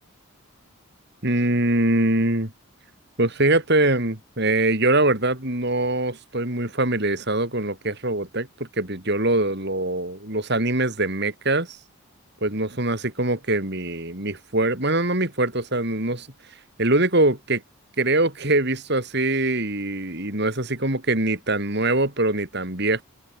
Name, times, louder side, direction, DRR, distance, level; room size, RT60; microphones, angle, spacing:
voice 1, 1.2-2.5 3.2-11.8 12.4-16.3 16.8-17.6 18.0-23.0, right 2 dB, 50° right, 3.8 m, -23 dB
head